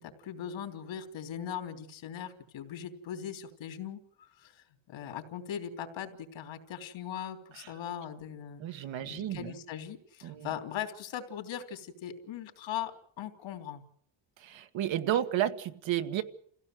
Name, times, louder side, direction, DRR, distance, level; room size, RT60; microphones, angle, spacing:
voice 1, 0.0-13.8, left 9 dB, 75° left, 3.3 m, -40 dB
voice 2, 8.6-9.5 10.2-10.5 14.4-16.2, right 11 dB, 70° right, 1.8 m, -32 dB
27.5 x 16.5 x 7.8 m
cardioid pair, 170°, 46 cm